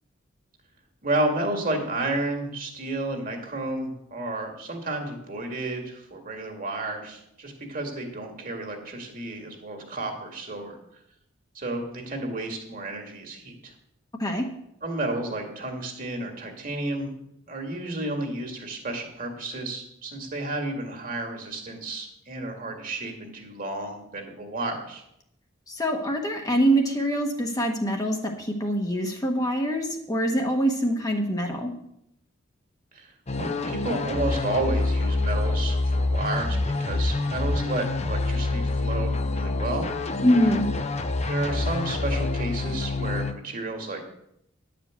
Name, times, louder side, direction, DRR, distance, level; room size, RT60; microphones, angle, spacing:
voice 1, 1.0-10.8 11.5-13.7 14.8-17.1 17.5-25.0 32.9-33.1 33.4-39.9 41.3-44.0, right 2 dB, 45° right, 3 dB, 2.1 m, -31 dB
voice 2, 25.7-31.7 40.2-40.7, equal, 20° left, 2 dB, 1.1 m, -24 dB
sound 1, 33.3-43.3, left 2 dB, 35° left, 0.7 m, -27 dB
10.5 x 5.1 x 8.1 m, 0.77 s
head